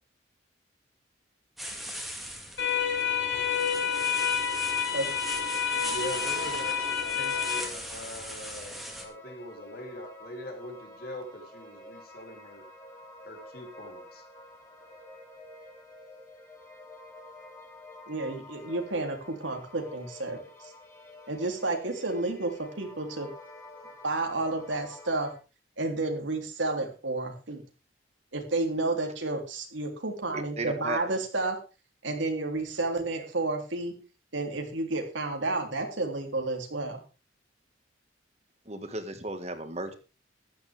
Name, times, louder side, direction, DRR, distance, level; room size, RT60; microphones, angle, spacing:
sound 1, 1.6-9.0, equal, ahead, 2.3 m, -40 dB
sound 2, 2.6-7.6, left 7 dB, 70° left, 5.0 m, -29 dB
voice 1, 5.8-8.8 9.0-12.7 13.2-14.2, left 1 dB, 50° left, 3 dB, 3.6 m, -41 dB
sound 3, 6.2-25.3, left 1 dB, 15° left, 4.1 m, -49 dB
voice 2, 18.1-20.4 21.3-23.3 24.0-25.3 25.8-27.6 28.3-31.6 32.0-33.9 34.3-37.0, right 2 dB, 85° right, 3 dB, 3.3 m, -31 dB
voice 3, 30.3-31.0 38.6-39.9, right 2 dB, 35° right, 8 dB, 1.8 m, -35 dB
15.0 x 12.5 x 3.6 m, 0.31 s
head